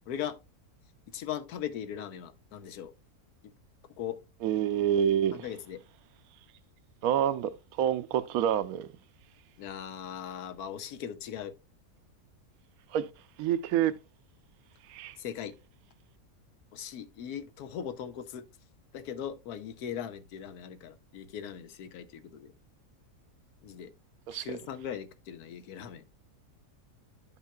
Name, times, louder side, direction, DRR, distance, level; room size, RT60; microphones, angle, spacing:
voice 1, 0.1-0.4 1.1-2.9 4.0-4.2 5.3-5.8 9.6-11.5 15.2-15.5 16.7-18.4 18.9-22.5 23.6-23.9 24.3-26.0, left 9 dB, 90° left, 1.2 m, -39 dB
voice 2, 4.4-5.4 7.0-8.9 12.9-13.1 13.4-14.0 14.9-15.2 24.3-24.5, right 10 dB, 75° right, 1.0 m, -27 dB
11.0 x 5.6 x 2.2 m
omnidirectional pair, 1.6 m